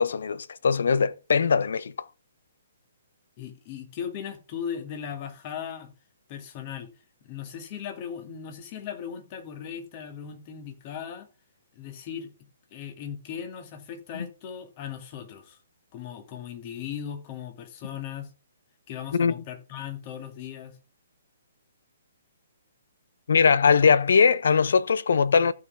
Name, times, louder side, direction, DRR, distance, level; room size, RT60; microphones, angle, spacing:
voice 1, 0.0-1.9 19.1-19.3 23.3-25.5, left 6 dB, 60° left, 0.8 m, -21 dB
voice 2, 3.4-5.9 6.3-6.9 7.2-11.3 11.8-12.3 12.7-15.6 15.9-18.3 18.9-20.8, left 8 dB, 35° left, 2.3 m, -38 dB
15.0 x 5.9 x 3.6 m
figure-of-eight pair, 125°, 0 cm